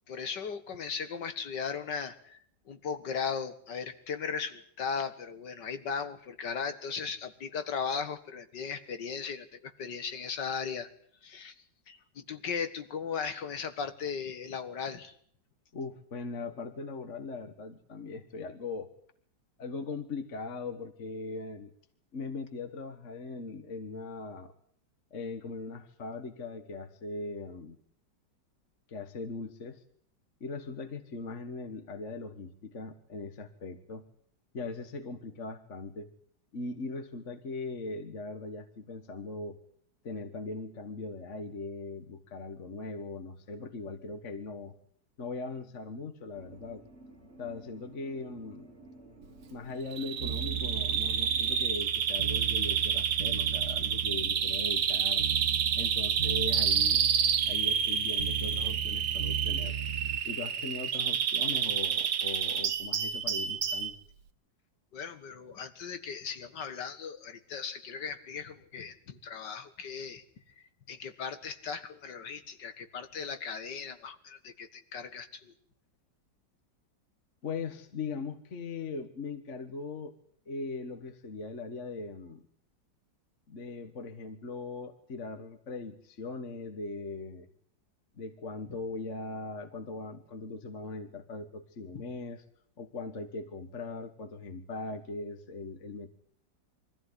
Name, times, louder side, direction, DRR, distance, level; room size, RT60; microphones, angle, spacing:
voice 1, 0.1-2.4 2.7-10.9 11.2-11.6 11.9-15.1 64.9-70.2 70.6-75.5 91.9-92.0, left 6 dB, 70° left, 10 dB, 2.3 m, -37 dB
voice 2, 15.7-18.9 19.6-21.7 22.1-24.5 25.1-27.8 28.9-29.8 30.4-34.0 34.5-36.1 36.5-39.6 40.0-44.7 45.2-46.8 47.4-48.7 49.5-55.2 55.8-57.0 57.5-59.8 60.2-64.0 77.4-80.1 80.5-82.4 83.5-87.5 88.2-92.4 92.8-96.1, left 3 dB, 45° left, 8 dB, 1.8 m, -40 dB
sound 1, 46.3-51.6, right 2 dB, 35° right, 3.0 m, -53 dB
Bird vocalization bird call bird song, 49.9-63.9, right 8 dB, 80° right, 1.8 m, -29 dB
sound 2, 50.2-60.2, right 9 dB, 65° right, 2.2 m, -37 dB
24.0 x 15.0 x 9.8 m, 0.62 s
omnidirectional pair, 1.9 m